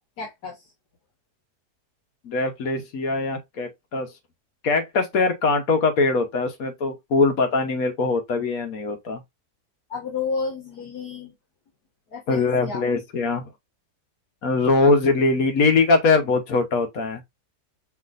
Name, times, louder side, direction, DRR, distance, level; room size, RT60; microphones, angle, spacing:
voice 1, 0.2-0.7 9.9-11.3 12.1-12.8, left 4 dB, 85° left, 2.0 m, -31 dB
voice 2, 2.2-4.1 4.6-9.2 12.3-13.5 14.4-17.2, left 3 dB, 65° left, 1.4 m, -22 dB
5.7 x 2.8 x 2.6 m
omnidirectional pair, 1.6 m